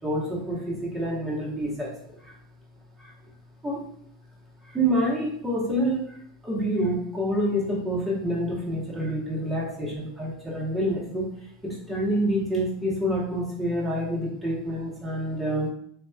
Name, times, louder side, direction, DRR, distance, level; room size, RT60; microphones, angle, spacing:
voice 1, 0.0-1.9 2.2-2.3 3.0-3.1 3.6-3.8 4.6-6.2 6.4-15.7, equal, 10° right, -5 dB, 1.4 m, -27 dB
3.5 x 2.9 x 2.4 m, 0.67 s
hypercardioid pair, 85°, 0 cm